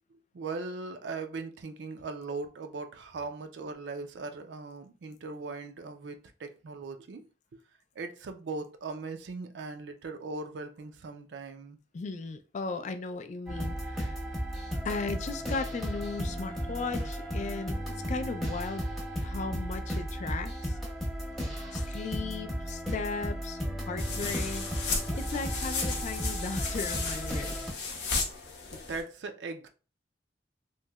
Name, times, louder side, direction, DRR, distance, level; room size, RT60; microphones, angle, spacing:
voice 1, 0.3-7.3 8.0-11.8 21.3-22.0 28.7-29.7, right 3 dB, 75° right, 0.4 m, -39 dB
voice 2, 11.9-14.2 14.8-18.9 19.2-20.8 21.7-23.6 23.9-24.7 25.1-27.7, left 4 dB, 45° left, 0.3 m, -36 dB
sound 1, 13.5-27.7, equal, ahead, 0.8 m, -34 dB
sound 2, 24.0-29.0, left 4 dB, 65° left, 0.7 m, -34 dB
3.0 x 2.7 x 2.3 m
head